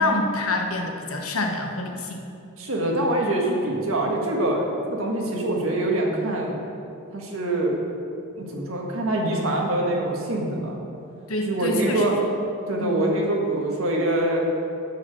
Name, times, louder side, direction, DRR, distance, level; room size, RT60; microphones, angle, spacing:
voice 1, 0.0-2.2 11.3-12.1 12.8-13.1, left 2 dB, 85° left, 2 dB, 1.2 m, -26 dB
voice 2, 2.6-6.6 7.1-7.7 8.4-10.8 11.5-12.2 12.7-14.4, right 1 dB, 75° right, -1 dB, 1.7 m, -24 dB
11.5 x 4.9 x 6.4 m, 2.6 s
head